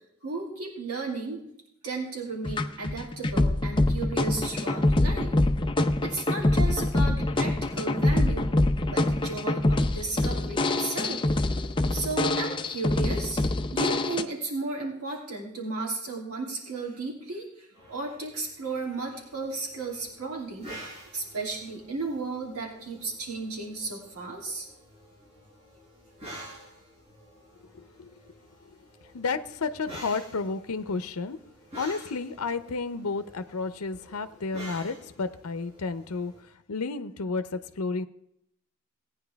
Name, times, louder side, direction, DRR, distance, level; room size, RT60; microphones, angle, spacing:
voice 1, 0.2-1.4 1.8-5.4 6.0-8.5 8.9-11.3 11.9-13.4 13.7-20.7 21.1-24.7, right 3 dB, 85° right, -1 dB, 2.9 m, -34 dB
sound 1, 2.4-14.2, left 2 dB, 20° left, 0.5 m, -25 dB
sound 2, 17.7-36.4, right 1 dB, 30° right, 5.2 m, -49 dB
voice 2, 27.7-28.1 29.1-31.4 31.8-36.3 36.7-38.0, left 4 dB, 85° left, 11 dB, 0.7 m, -31 dB
17.5 x 9.4 x 3.4 m, 0.76 s
head